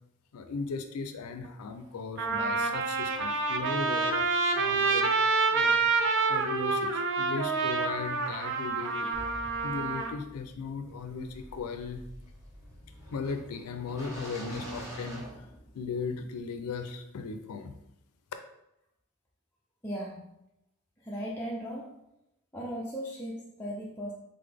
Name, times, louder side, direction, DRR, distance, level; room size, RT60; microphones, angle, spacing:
voice 1, 0.3-4.2 4.5-5.1 5.5-5.9 6.3-9.1 9.6-12.0 13.1-15.2 15.7-17.7, left 4 dB, 90° left, 7 dB, 0.4 m, -37 dB
Trumpet, 1.4-1.5 2.2-10.1, right 4 dB, 55° right, 0.5 m, -28 dB
sound 1, 9.1-16.1, right 1 dB, 15° right, 1.0 m, -45 dB
voice 2, 19.8-20.4 21.0-21.9 22.5-24.1, equal, 10° left, -6 dB, 0.5 m, -37 dB
3.8 x 3.8 x 3.4 m, 0.84 s
head